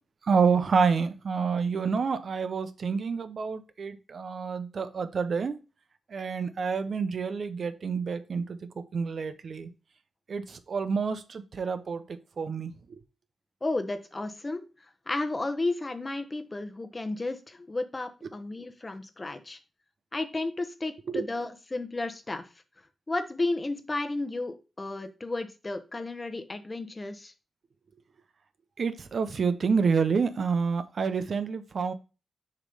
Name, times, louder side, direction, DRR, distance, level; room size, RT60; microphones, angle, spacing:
voice 1, 0.2-5.6 6.1-8.6 8.9-9.7 10.3-13.0 21.1-21.2 28.8-31.9, right 5 dB, 60° right, 0.6 m, -28 dB
voice 2, 13.6-14.6 15.1-19.6 20.1-22.5 23.1-27.3, left 2 dB, 30° left, 0.9 m, -33 dB
6.8 x 3.2 x 5.4 m
cardioid pair, 70°, 0 cm